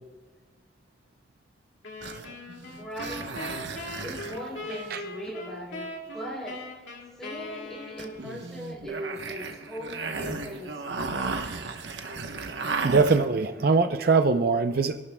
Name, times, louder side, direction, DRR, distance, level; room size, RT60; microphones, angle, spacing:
sound 1, 1.8-8.4, left 2 dB, 90° left, 2.2 m, -40 dB
sound 2, 2.0-5.0 8.0-13.5, right 4 dB, 80° right, 1.0 m, -35 dB
voice 1, 2.8-3.3 4.0-6.9 7.2-11.4, equal, 5° left, -1 dB, 3.3 m, -39 dB
voice 2, 12.8-15.0, right 4 dB, 55° right, 8 dB, 0.5 m, -22 dB
27.0 x 12.0 x 2.2 m, 1.4 s
head